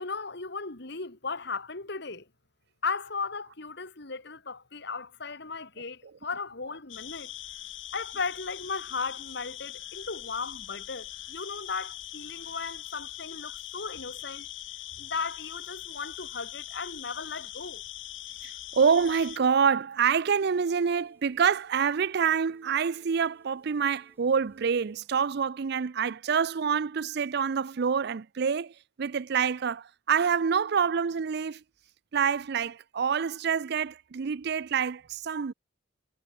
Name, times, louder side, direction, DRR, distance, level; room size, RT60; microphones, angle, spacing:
voice 1, 0.0-2.2 2.8-7.3 7.9-14.5 15.0-17.8, left 4 dB, 60° left, 2.4 m, -36 dB
sound 1, 6.9-19.4, left 13 dB, 85° left, 2.9 m, -42 dB
voice 2, 18.4-31.6 32.1-35.5, right 6 dB, 60° right, 0.5 m, -27 dB
Telephone, 19.9-25.1, equal, 10° right, 7.0 m, -65 dB
head